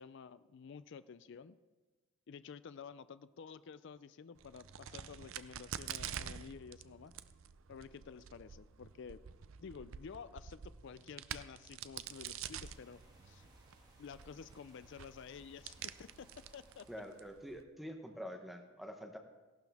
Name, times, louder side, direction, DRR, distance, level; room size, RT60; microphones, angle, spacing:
voice 1, 0.0-1.6 2.3-7.1 7.7-9.2 9.6-13.5 14.0-16.9, left 6 dB, 60° left, 14 dB, 0.4 m, -51 dB
Crack, 4.4-17.6, right 9 dB, 70° right, 0.5 m, -48 dB
sound 1, 12.0-17.6, right 1 dB, 20° right, 2.1 m, -65 dB
voice 2, 16.9-19.2, equal, ahead, 2 dB, 0.8 m, -46 dB
16.5 x 12.0 x 3.5 m, 1.3 s
head